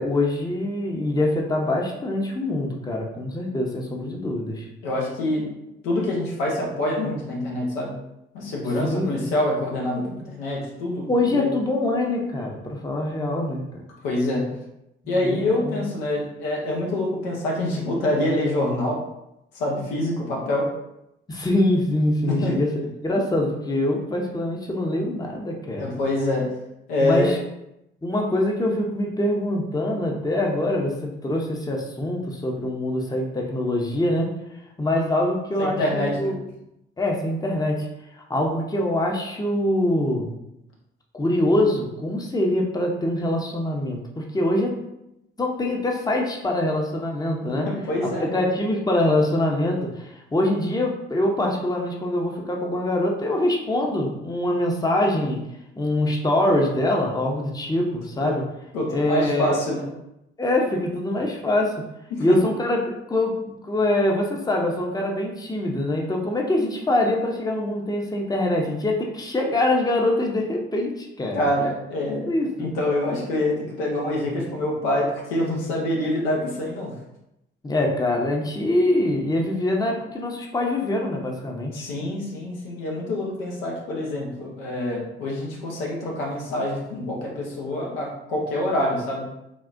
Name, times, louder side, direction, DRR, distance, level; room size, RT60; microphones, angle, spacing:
voice 1, 0.0-4.6 8.8-9.3 11.1-13.7 15.0-15.8 21.3-22.7 23.0-25.9 27.0-27.4 28.0-34.3 34.8-36.3 37.0-37.9 38.2-40.3 41.1-44.8 45.4-47.7 48.2-55.4 55.8-58.4 58.9-59.6 60.4-61.8 62.2-62.8 63.1-71.5 72.3-72.7 77.6-81.9, left 1 dB, 15° left, 0 dB, 0.7 m, -24 dB
voice 2, 4.8-5.4 5.8-7.9 8.3-11.4 14.0-14.4 15.1-19.0 19.5-20.6 22.3-22.6 25.8-26.5 26.9-27.4 35.6-36.3 47.6-48.4 58.2-58.3 58.7-59.9 62.1-62.4 71.3-72.3 72.6-76.9 81.7-89.2, left 1 dB, 80° left, -3 dB, 0.8 m, -25 dB
3.6 x 2.4 x 2.5 m, 0.85 s
hypercardioid pair, 45°, 29 cm